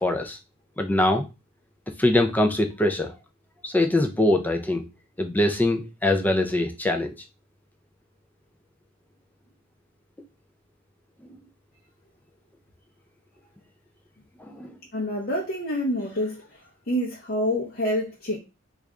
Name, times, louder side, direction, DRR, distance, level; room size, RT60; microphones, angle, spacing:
voice 1, 0.0-0.4 0.8-1.3 2.0-3.1 3.6-4.9 5.2-7.1 14.4-14.7, left 1 dB, 10° left, 0.4 m, -23 dB
voice 2, 14.9-16.6 16.9-18.4, equal, 45° left, 0.7 m, -27 dB
3.2 x 2.4 x 3.5 m
head